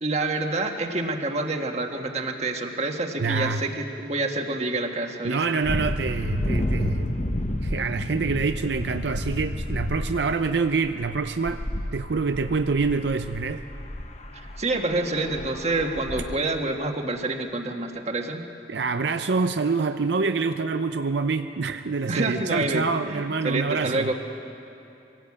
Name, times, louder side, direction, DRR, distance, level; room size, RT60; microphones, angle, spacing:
voice 1, 0.0-5.6 14.3-18.5 22.1-24.1, right 2 dB, 40° right, 3 dB, 1.6 m, -28 dB
voice 2, 3.2-3.6 5.2-7.2 7.6-11.6 11.9-13.6 18.7-24.1, right 4 dB, 75° right, 8 dB, 0.6 m, -26 dB
sound 1, 5.6-16.4, left 1 dB, 40° left, 1.0 m, -31 dB
23.5 x 17.0 x 8.5 m, 2.8 s
head